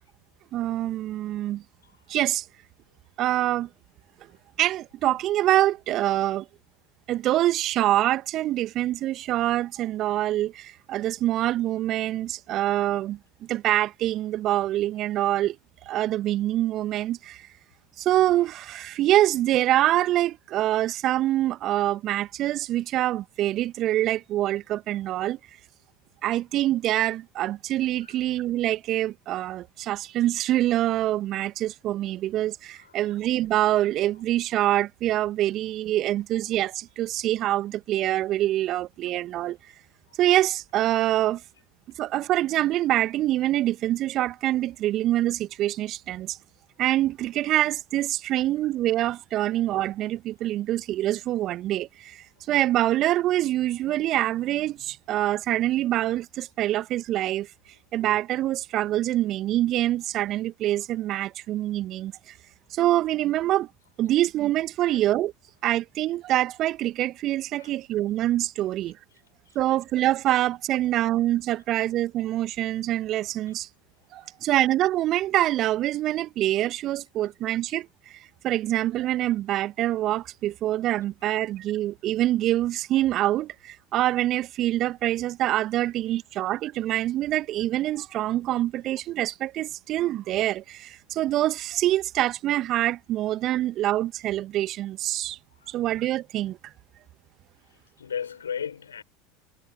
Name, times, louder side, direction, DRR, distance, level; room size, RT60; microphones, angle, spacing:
voice 1, 0.5-1.6 2.1-2.5 3.2-3.7 4.6-6.5 7.1-13.2 13.5-15.6 15.9-17.5 18.0-25.4 26.2-39.6 40.2-41.4 42.0-46.4 46.8-57.5 57.9-62.4 62.7-63.7 64.0-65.3 65.6-69.0 69.6-73.7 74.1-95.4 95.7-96.7, right 14 dB, 45° right, 1.9 m, -25 dB
voice 2, 1.8-2.2 28.0-28.2 32.7-33.0 64.8-65.0 67.6-67.7 69.5-69.6 73.5-73.6 74.2-74.3 95.6-95.9 97.6-99.0, left 7 dB, 80° left, 4.1 m, -37 dB
figure-of-eight pair, 75°, 0 cm